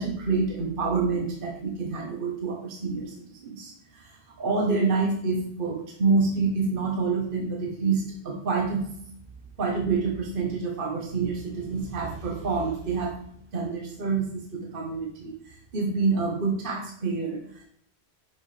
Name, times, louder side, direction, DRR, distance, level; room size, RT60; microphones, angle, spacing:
voice 1, 0.0-8.8 9.6-13.1 13.5-15.3 15.7-17.4, right 4 dB, 55° right, 1 dB, 1.2 m, -27 dB
6.7 x 6.2 x 3.3 m, 0.68 s
omnidirectional pair, 1.1 m